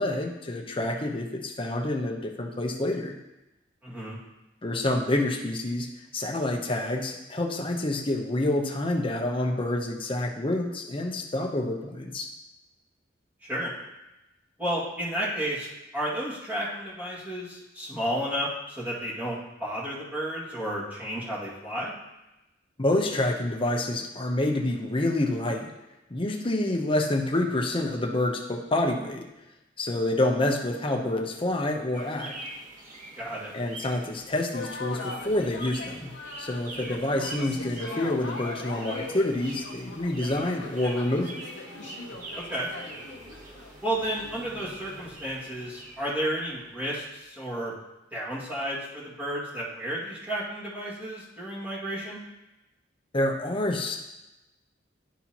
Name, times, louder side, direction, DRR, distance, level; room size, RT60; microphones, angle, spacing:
voice 1, 0.0-3.2 4.6-12.3 22.8-25.7 26.1-29.2 29.8-32.4 33.5-36.1 36.4-41.4 53.1-54.0, left 1 dB, 30° left, 2 dB, 0.8 m, -28 dB
voice 2, 3.8-4.2 13.5-13.7 14.6-21.9 33.2-33.6 42.3-42.7 43.8-47.7 48.1-52.2, equal, 10° right, -8 dB, 2.0 m, -32 dB
sound 1, 31.9-47.1, right 2 dB, 45° right, 1.1 m, -44 dB
sound 2, 34.5-43.7, left 3 dB, 75° left, 0.8 m, -40 dB
11.5 x 4.3 x 2.9 m, 0.97 s
head